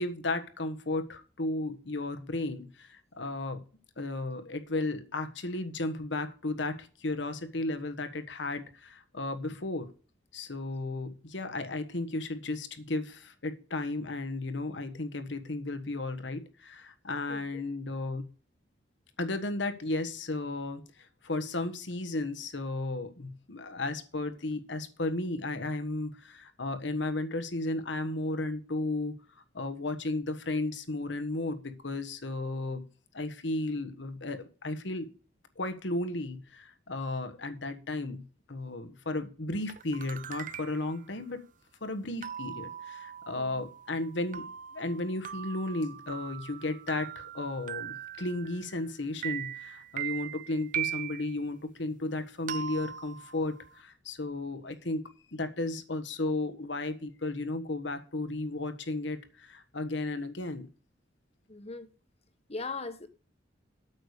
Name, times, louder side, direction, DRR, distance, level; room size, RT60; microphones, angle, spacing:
voice 1, 0.0-3.6 4.0-9.9 10.3-18.2 19.2-20.8 21.2-29.1 29.5-32.8 33.1-35.1 35.6-38.2 38.5-41.4 41.8-44.5 44.7-60.7, left 2 dB, 70° left, 1.4 m, -34 dB
voice 2, 17.3-17.6 43.4-43.6 61.5-61.9 62.5-63.1, left 3 dB, 35° left, 1.3 m, -39 dB
sound 1, 39.7-41.0 42.2-48.9 49.2-51.4 52.5-53.8, right 10 dB, 45° right, 0.7 m, -40 dB
8.9 x 6.9 x 6.6 m
head